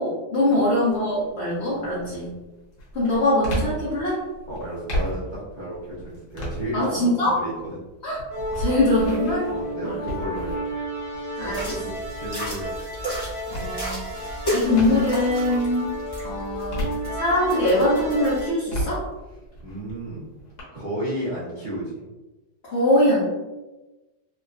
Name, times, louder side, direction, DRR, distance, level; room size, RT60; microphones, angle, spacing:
voice 1, 0.0-2.3 2.9-4.2 6.7-7.4 8.0-8.2 8.6-9.5 9.8-10.0 11.4-11.6 13.5-14.0 14.5-16.0 16.2-16.9 17.1-19.0 22.6-23.2, left 1 dB, 50° left, -8 dB, 0.8 m, -22 dB
sound 1, 0.9-1.3 1.8-15.3 15.8-17.6 18.0-20.6, equal, 70° left, 1.4 m, -35 dB
voice 2, 4.5-7.5 9.5-10.5 11.4-12.7 19.6-20.3 20.7-22.0, right 1 dB, 65° right, -9 dB, 0.4 m, -33 dB
sound 2, 8.3-18.5, right 1 dB, 45° right, 0.9 m, -32 dB
sound 3, 11.4-18.4, equal, 25° left, 0.5 m, -33 dB
3.5 x 2.1 x 2.4 m, 1.1 s
omnidirectional pair, 1.9 m